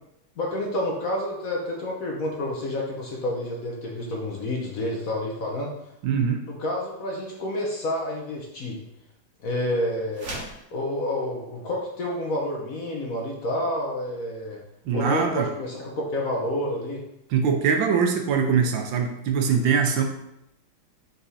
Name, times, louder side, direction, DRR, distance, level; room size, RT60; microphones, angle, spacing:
voice 1, 0.4-5.7 6.5-8.8 9.4-10.3 10.7-14.6 14.9-17.0, left 1 dB, 55° left, -2 dB, 1.1 m, -29 dB
voice 2, 6.0-6.4 14.9-15.5 17.3-20.0, right 6 dB, 75° right, 4 dB, 1.4 m, -22 dB
sound 1, 10.1-10.7, right 2 dB, 45° right, 1.6 m, -35 dB
5.3 x 4.4 x 4.1 m, 0.81 s
omnidirectional pair, 2.2 m